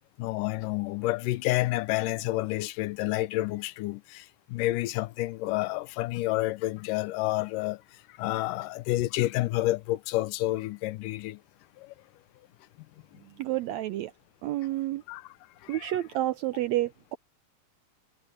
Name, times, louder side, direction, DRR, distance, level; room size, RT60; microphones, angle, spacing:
voice 1, 0.2-7.8 8.1-11.4 11.8-11.9 15.1-15.4 15.6-16.0, left 18 dB, 85° left, 2.2 m, -29 dB
voice 2, 13.4-14.1 14.4-15.0 15.7-17.2, right 14 dB, 85° right, 1.6 m, -29 dB
omnidirectional pair, 3.8 m